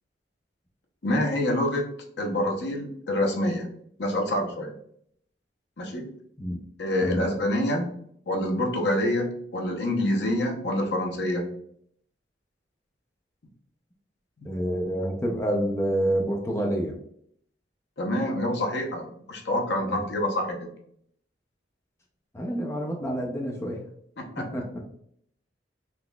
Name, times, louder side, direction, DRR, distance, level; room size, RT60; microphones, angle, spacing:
voice 1, 1.0-1.9 2.2-3.7 4.0-4.7 5.8-6.1 6.8-7.9 8.3-11.4 18.0-20.7 24.2-24.4, left 1 dB, 65° left, 2 dB, 0.7 m, -26 dB
voice 2, 14.4-17.0 19.9-20.0 22.3-23.8 24.4-24.7, right 1 dB, 15° left, 0 dB, 0.4 m, -28 dB
3.9 x 2.9 x 2.2 m, 0.67 s
head